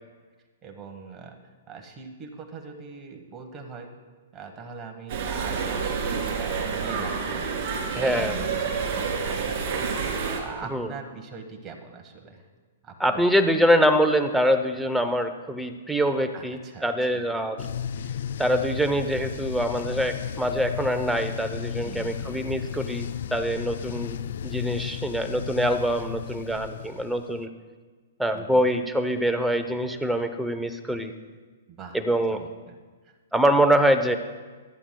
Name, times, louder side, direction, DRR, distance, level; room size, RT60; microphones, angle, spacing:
voice 1, 0.6-1.3 1.7-3.9 4.3-7.4 8.2-12.4 12.8-13.2 16.3-17.2 21.8-22.4 28.3-28.6 31.7-32.0 32.3-32.7, right 5 dB, 20° right, 3 dB, 1.3 m, -41 dB
sound 1, 5.1-10.4, right 5 dB, 40° right, 2.3 m, -28 dB
voice 2, 8.0-8.4 10.7-10.9 13.0-17.7 18.4-24.2 24.4-27.5 28.2-31.1 31.9-32.4 33.3-34.2, equal, ahead, 6 dB, 0.7 m, -24 dB
sound 2, 17.6-27.4, left 8 dB, 65° left, 0.4 m, -34 dB
24.5 x 9.1 x 2.3 m, 1.4 s
hypercardioid pair, 145°, 0 cm